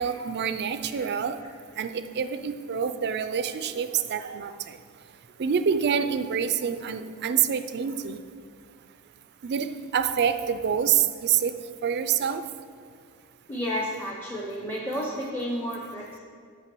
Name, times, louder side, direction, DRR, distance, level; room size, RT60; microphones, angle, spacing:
voice 1, 0.0-1.4 1.8-4.8 5.4-8.2 9.4-12.5, right 7 dB, 50° right, 10 dB, 0.4 m, -27 dB
voice 2, 13.5-16.2, equal, 10° left, -4 dB, 0.7 m, -31 dB
6.1 x 5.7 x 6.1 m, 2.2 s
head